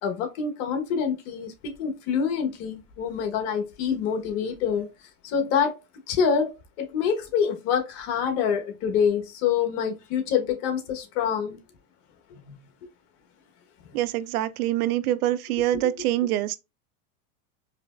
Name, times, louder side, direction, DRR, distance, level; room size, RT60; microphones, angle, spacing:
voice 1, 0.0-4.9 5.2-5.8 6.1-11.6 12.3-12.6 15.7-15.8, left 7 dB, 60° left, 1.2 m, -26 dB
voice 2, 13.9-16.6, right 13 dB, 75° right, 0.5 m, -25 dB
4.8 x 3.0 x 2.4 m
hypercardioid pair, 115°, 44 cm